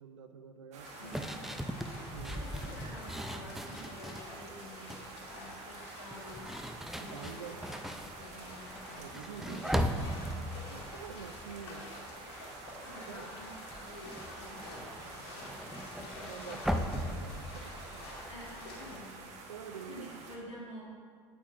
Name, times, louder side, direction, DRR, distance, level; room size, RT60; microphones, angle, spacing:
voice 1, 0.0-1.2 2.1-2.4 7.0-7.6 9.0-10.2 10.7-11.9 13.1-13.3 16.3-18.2 19.5-20.3, right 7 dB, 85° right, 8 dB, 0.4 m, -47 dB
sound 1, 0.7-20.4, right 3 dB, 50° right, 1.2 m, -49 dB
sound 2, 0.8-19.3, left 2 dB, 65° left, 1.8 m, -49 dB
voice 2, 1.0-1.4 2.2-4.9 5.4-6.6 7.0-8.8 12.8-13.5 13.8-16.8 18.3-19.3 19.9-20.9, left 1 dB, 90° left, -3 dB, 1.4 m, -50 dB
sound 3, 1.1-4.3 4.7-5.1 6.0-12.3 12.6-12.9 13.2-18.7, equal, ahead, 0.5 m, -39 dB
8.9 x 8.8 x 2.5 m, 2.1 s
hypercardioid pair, 70°, 15 cm